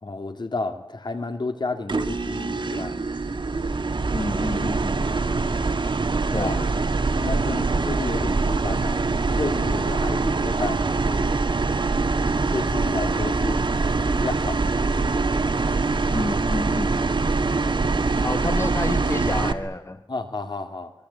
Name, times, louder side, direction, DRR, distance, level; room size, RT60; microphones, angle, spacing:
voice 1, 0.0-3.0 6.3-6.5 7.2-11.3 12.5-14.8 16.1-16.2 20.1-20.9, left 3 dB, 65° left, 7 dB, 2.7 m, -31 dB
sound 1, 1.9-19.5, right 3 dB, 75° right, 1.6 m, -24 dB
voice 2, 4.1-5.1 6.3-6.8 16.1-17.1 18.2-20.0, left 2 dB, 35° left, 8 dB, 1.6 m, -30 dB
26.0 x 23.0 x 8.4 m, 0.86 s
wide cardioid pair, 85°, 8 cm